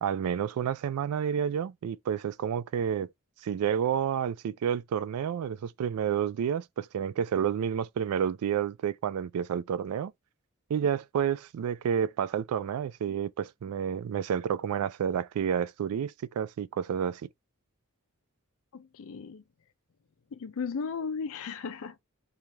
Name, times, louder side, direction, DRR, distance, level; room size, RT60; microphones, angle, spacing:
voice 1, 0.0-3.1 3.4-10.1 10.7-17.2, right 8 dB, 80° right, 0.3 m, -30 dB
voice 2, 18.7-19.4 20.3-22.0, left 5 dB, 65° left, 0.4 m, -36 dB
2.8 x 2.4 x 3.1 m
head